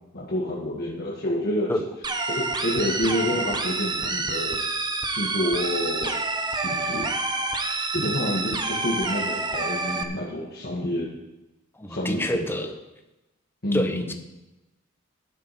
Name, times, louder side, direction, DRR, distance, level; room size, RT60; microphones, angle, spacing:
voice 1, 0.1-1.7 2.3-4.6 5.1-6.1 6.6-7.1 7.9-11.1 11.9-12.7 13.6-14.1, left 1 dB, 50° left, -5 dB, 1.9 m, -28 dB
sound 1, 2.0-10.0, right 3 dB, 20° right, 0.8 m, -28 dB
voice 2, 11.8-12.7 13.7-14.1, left 1 dB, 10° left, 6 dB, 0.9 m, -27 dB
11.5 x 10.5 x 4.3 m, 0.98 s
head